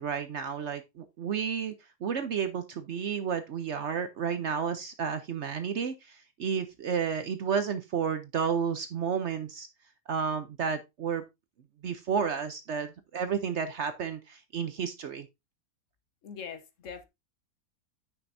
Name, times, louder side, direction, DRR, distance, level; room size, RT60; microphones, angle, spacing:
voice 1, 0.0-1.7 2.0-9.7 10.1-11.2 11.8-15.3, right 6 dB, 60° right, 0.8 m, -31 dB
voice 2, 16.2-17.1, left 6 dB, 60° left, 1.1 m, -42 dB
9.2 x 6.0 x 2.6 m
omnidirectional pair, 1.7 m